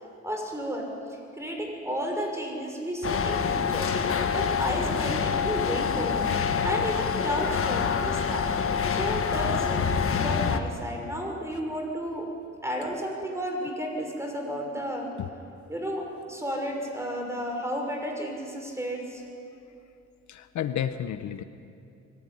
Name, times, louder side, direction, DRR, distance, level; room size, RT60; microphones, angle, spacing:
voice 1, 0.2-0.8 1.1-3.9 4.3-6.3 6.6-9.9 10.2-12.3 12.6-15.1 15.7-19.2, equal, 10° right, 1 dB, 6.1 m, -32 dB
sound 1, 3.0-10.6, left 6 dB, 45° left, 1.5 m, -26 dB
voice 2, 20.3-21.4, left 10 dB, 70° left, 11 dB, 1.0 m, -31 dB
23.0 x 15.0 x 9.9 m, 2.8 s
cardioid pair, 90°, 30 cm